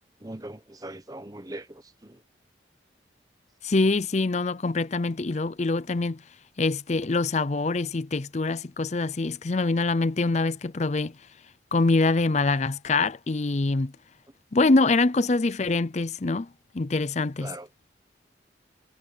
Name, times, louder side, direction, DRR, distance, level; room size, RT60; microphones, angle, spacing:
voice 1, 0.2-2.2 17.4-17.7, right 1 dB, 20° right, 1.1 m, -40 dB
voice 2, 3.6-6.2 6.6-11.1 11.7-13.9 14.5-16.5 16.7-17.5, left 3 dB, 40° left, 0.5 m, -24 dB
head